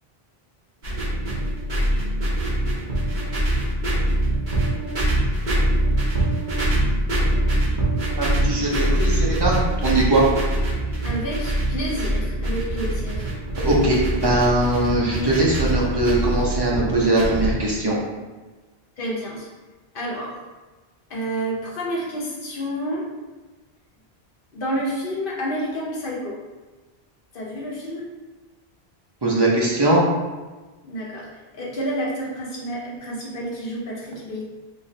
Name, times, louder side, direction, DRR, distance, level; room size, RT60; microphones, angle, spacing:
sound 1, 0.8-17.5, right 1 dB, 50° right, 1.1 m, -23 dB
voice 1, 8.2-10.2 13.6-17.9 29.2-30.0, right 1 dB, 30° right, -4 dB, 0.6 m, -20 dB
voice 2, 11.0-13.3 19.0-19.5 19.9-20.4 21.1-23.1 24.5-26.4 27.3-28.1 30.8-31.3 31.5-34.4, equal, 60° left, -4 dB, 1.0 m, -29 dB
3.2 x 3.1 x 2.7 m, 1.2 s
omnidirectional pair, 1.1 m